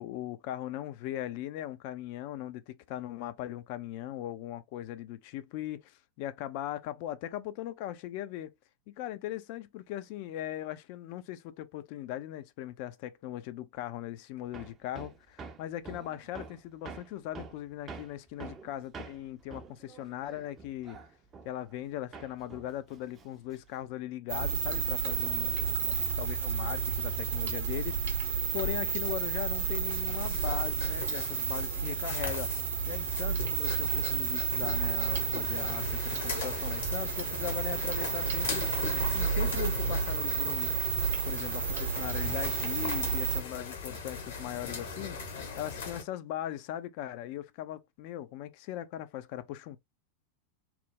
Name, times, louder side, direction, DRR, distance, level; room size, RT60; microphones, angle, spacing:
voice 1, 0.0-8.6 8.9-21.0 21.4-32.5 32.8-40.7 41.2-49.8, left 13 dB, 45° left, 0.3 m, -39 dB
Hammer, 14.5-21.9 22.1-23.9, right 4 dB, 25° right, 0.4 m, -47 dB
sound 1, 24.3-43.4, right 7 dB, 60° right, 0.7 m, -31 dB
sound 2, 28.3-46.0, left 5 dB, 60° left, 0.9 m, -39 dB
2.9 x 2.0 x 3.6 m
figure-of-eight pair, 90°, 0 cm